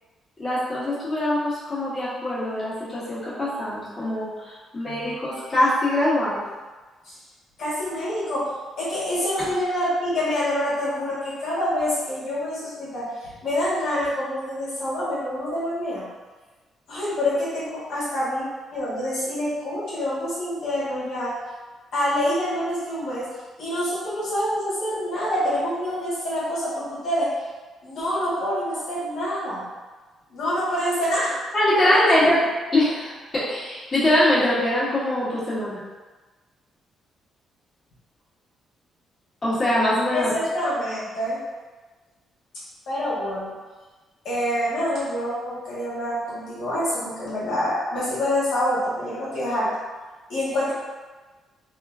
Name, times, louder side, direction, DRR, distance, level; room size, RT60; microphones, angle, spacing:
voice 1, 0.4-4.3 4.7-6.4 31.5-32.4 32.7-35.8 39.4-40.3, left 1 dB, 25° left, -11 dB, 1.3 m, -22 dB
voice 2, 7.6-8.5 8.8-16.0 16.9-21.3 21.9-23.3 23.6-27.3 27.8-29.6 30.3-31.3 31.8-32.2 40.1-41.4 42.9-43.5 44.2-49.7 50.3-50.7, left 1 dB, 75° left, -10 dB, 1.2 m, -26 dB
2.9 x 2.4 x 2.4 m, 1.3 s
cardioid pair, 90°, 0 cm